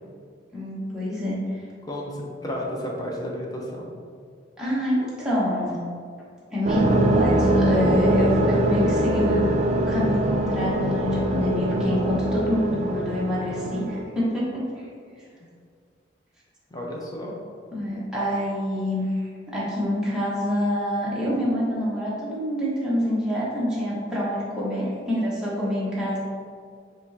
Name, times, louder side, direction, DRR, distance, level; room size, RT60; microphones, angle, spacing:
voice 1, 0.5-1.4 4.6-5.8 6.5-14.9 17.7-19.0 19.5-26.2, equal, 5° right, -9 dB, 1.1 m, -26 dB
voice 2, 1.9-3.9 16.7-17.4, equal, 20° left, -2 dB, 0.7 m, -32 dB
sound 1, 6.6-14.0, right 1 dB, 35° right, 0.3 m, -23 dB
5.3 x 3.1 x 2.7 m, 2.1 s
head